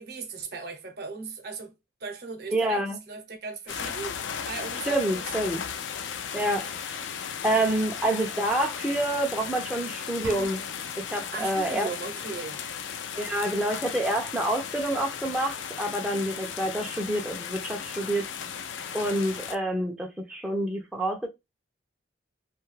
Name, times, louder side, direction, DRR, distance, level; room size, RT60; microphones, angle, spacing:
voice 1, 0.0-1.7 2.0-4.2 4.5-5.2 6.4-6.7 11.3-12.6 16.0-16.1 18.8-18.9, right 4 dB, 55° right, 0.7 m, -38 dB
voice 2, 2.5-3.0 4.9-5.6 6.3-7.0 7.4-10.6 11.0-11.9 13.2-18.2 18.9-21.3, right 1 dB, 5° right, 0.4 m, -28 dB
sound 1, 3.7-19.6, left 7 dB, 75° left, 0.4 m, -36 dB
sound 2, 10.2-11.2, right 2 dB, 90° right, 0.7 m, -42 dB
2.7 x 2.3 x 3.1 m
head